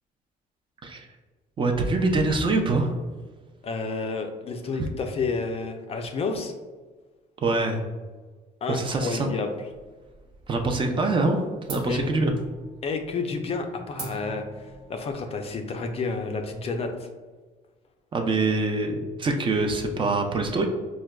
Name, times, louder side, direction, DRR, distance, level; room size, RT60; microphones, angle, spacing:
voice 1, 1.6-2.9 4.8-4.9 7.4-7.8 8.7-9.3 10.5-12.3 18.1-20.6, right 3 dB, 30° right, 3 dB, 0.4 m, -24 dB
voice 2, 3.6-6.5 8.6-9.7 11.9-12.1 12.8-17.1, left 4 dB, 35° left, 5 dB, 0.4 m, -30 dB
sound 1, 9.7-10.6 10.9-11.3 11.7-16.8, right 2 dB, 65° right, 1.0 m, -42 dB
4.6 x 2.1 x 2.2 m, 1.3 s
cardioid pair, 110°, 17 cm